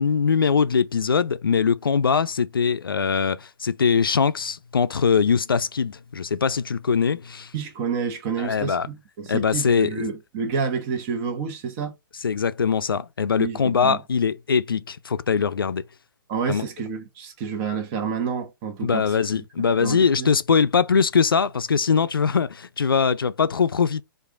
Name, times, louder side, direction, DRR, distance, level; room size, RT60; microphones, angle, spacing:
voice 1, 0.0-7.5 8.4-8.9 9.3-10.1 12.2-15.8 16.5-16.6 18.8-24.0, left 6 dB, 75° left, 0.4 m, -22 dB
voice 2, 7.5-11.9 13.4-14.0 16.3-19.4 19.8-20.3, right 6 dB, 35° right, 1.2 m, -29 dB
4.8 x 2.6 x 3.5 m
figure-of-eight pair, 115°, 12 cm